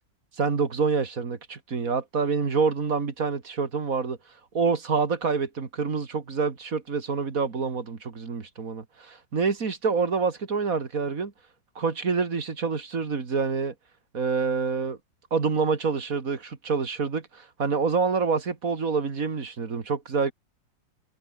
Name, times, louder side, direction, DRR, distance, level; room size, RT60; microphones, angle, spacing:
voice 1, 0.4-4.2 4.5-11.3 11.8-13.7 14.1-15.0 15.3-20.3, right 5 dB, 50° right, 2.6 m, -27 dB
omnidirectional pair, 2.0 m